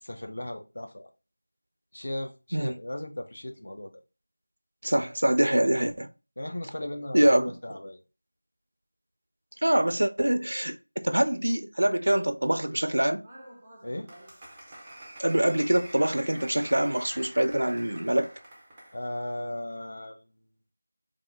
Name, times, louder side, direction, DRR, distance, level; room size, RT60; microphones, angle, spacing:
voice 1, 0.0-1.1 1.9-3.9 6.4-8.0 13.8-14.1 18.9-20.3, left 1 dB, 45° left, 0.6 m, -36 dB
voice 2, 4.8-6.1 7.1-7.5 9.6-13.2 15.2-18.3, right 1 dB, 75° right, 0.5 m, -24 dB
Applause, 13.2-19.0, right 1 dB, 10° right, 0.4 m, -46 dB
3.6 x 2.4 x 3.4 m
figure-of-eight pair, 180°, 0 cm